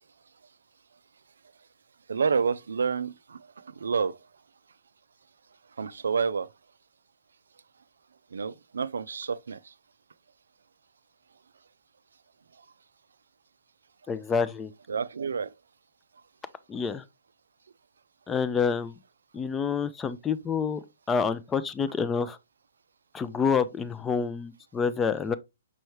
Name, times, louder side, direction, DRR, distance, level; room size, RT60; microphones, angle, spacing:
voice 1, 2.1-3.4 3.8-4.2 5.8-6.5 8.3-9.6 14.9-15.5, right 5 dB, 75° right, 0.3 m, -28 dB
voice 2, 14.1-14.7 16.7-17.0 18.3-18.9 19.3-20.8 21.1-22.4 23.1-25.3, left 6 dB, 15° left, 0.4 m, -27 dB
5.4 x 3.2 x 3.0 m
hypercardioid pair, 130°, 0 cm